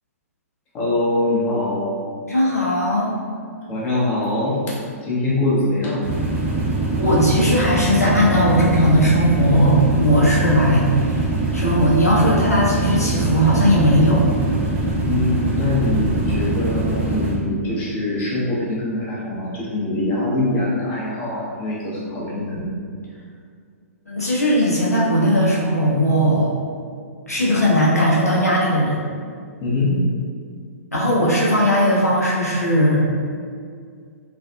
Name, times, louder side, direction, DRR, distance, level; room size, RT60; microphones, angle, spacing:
voice 1, 0.7-1.9 3.7-4.6 5.0-6.0 15.0-22.7 29.6-30.0, left 2 dB, 25° left, -7 dB, 0.8 m, -23 dB
voice 2, 2.2-3.1 7.0-11.3 11.5-14.2 24.1-26.5 27.3-29.0 30.9-33.1, equal, 85° left, -5 dB, 0.7 m, -18 dB
sound 1, 6.0-17.3, right 2 dB, 15° right, 0.6 m, -23 dB
3.3 x 2.4 x 2.3 m, 2.1 s
figure-of-eight pair, 115°, 8 cm